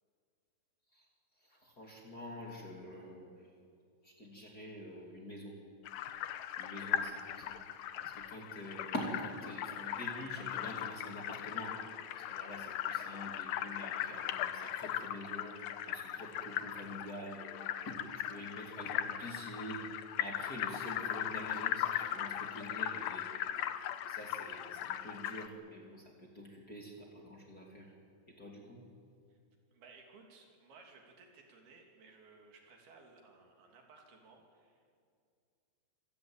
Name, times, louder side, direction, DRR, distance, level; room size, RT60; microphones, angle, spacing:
voice 1, 1.4-3.5 4.0-5.6 6.6-7.6 8.0-11.8 12.1-23.4 24.0-27.9 28.3-28.8, equal, 25° left, -2 dB, 3.1 m, -46 dB
sound 1, 5.9-25.5, left 11 dB, 70° left, 2.3 m, -39 dB
voice 2, 29.7-35.0, right 4 dB, 70° right, 1 dB, 4.7 m, -59 dB
27.0 x 16.5 x 9.0 m, 2.3 s
omnidirectional pair, 4.7 m